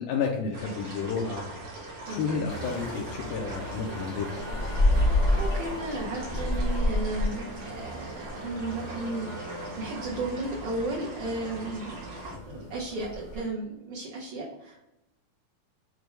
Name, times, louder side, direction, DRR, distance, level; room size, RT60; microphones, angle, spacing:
voice 1, 0.0-1.4 2.1-4.5, left 5 dB, 85° left, -1 dB, 2.1 m, -31 dB
sound 1, 0.5-12.4, right 2 dB, 55° right, 1.7 m, -41 dB
voice 2, 2.0-2.5 5.0-12.1 12.5-14.9, right 2 dB, 75° right, -5 dB, 1.4 m, -35 dB
sound 2, 2.5-13.4, left 1 dB, 60° left, 0.7 m, -31 dB
6.1 x 2.2 x 3.3 m, 0.90 s
omnidirectional pair, 3.6 m